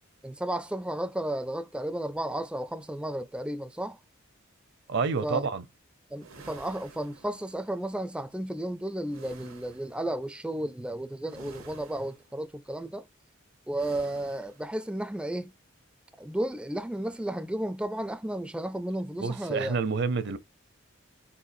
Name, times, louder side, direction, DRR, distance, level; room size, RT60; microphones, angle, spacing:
voice 1, 0.2-4.0 5.2-5.4 6.1-13.1 13.7-15.5 16.2-19.8, right 1 dB, 5° right, 0.4 m, -33 dB
voice 2, 4.9-5.6 19.2-20.4, right 4 dB, 60° right, 0.7 m, -28 dB
sound 1, 6.2-7.8 9.1-10.0 11.3-12.3 13.8-14.7, right 3 dB, 85° right, 1.0 m, -51 dB
4.5 x 4.2 x 2.6 m
head